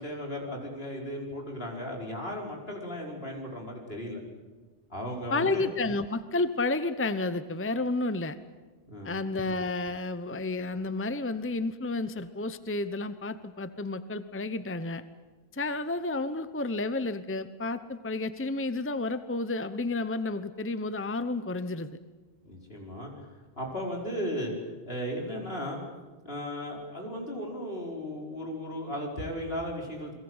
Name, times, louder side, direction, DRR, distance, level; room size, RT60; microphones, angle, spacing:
voice 1, 0.0-4.2 4.9-5.7 8.9-9.2 22.5-23.1 23.6-25.8 26.2-30.1, equal, 70° left, 0 dB, 5.2 m, -35 dB
voice 2, 5.3-8.4 9.0-15.0 15.5-22.0, left 2 dB, 15° left, 12 dB, 0.8 m, -31 dB
29.5 x 21.5 x 8.0 m, 1.3 s
omnidirectional pair, 1.1 m